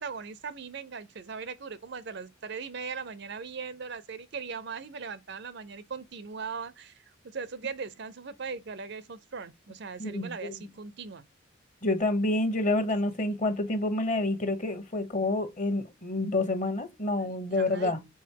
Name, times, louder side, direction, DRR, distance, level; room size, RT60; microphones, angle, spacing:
voice 1, 0.0-11.2 17.2-18.0, right 5 dB, 55° right, 0.6 m, -39 dB
voice 2, 10.0-10.3 11.8-18.0, left 2 dB, 35° left, 1.2 m, -28 dB
7.1 x 4.2 x 4.6 m
head